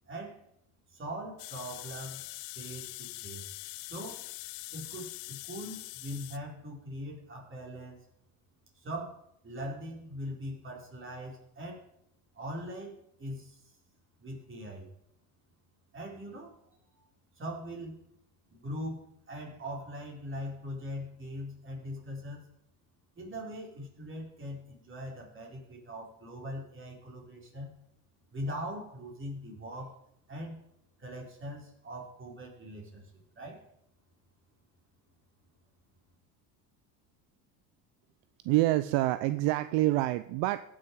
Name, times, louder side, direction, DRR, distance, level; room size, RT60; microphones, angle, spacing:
voice 1, 0.1-0.4 0.9-2.3 2.5-3.5 3.8-4.2 4.7-8.0 8.8-11.8 12.3-13.7 14.2-14.9 15.9-17.0 17.4-18.0 18.5-22.5 23.2-27.7 28.3-29.9 30.3-30.6 31.0-33.6, equal, 25° right, -2 dB, 4.4 m, -41 dB
sound 1, 1.4-6.4, left 20 dB, 75° left, 0.7 m, -43 dB
voice 2, 38.4-40.6, right 17 dB, 65° right, 12 dB, 0.6 m, -26 dB
17.0 x 6.4 x 4.7 m, 0.77 s
supercardioid pair, 100°, 46 cm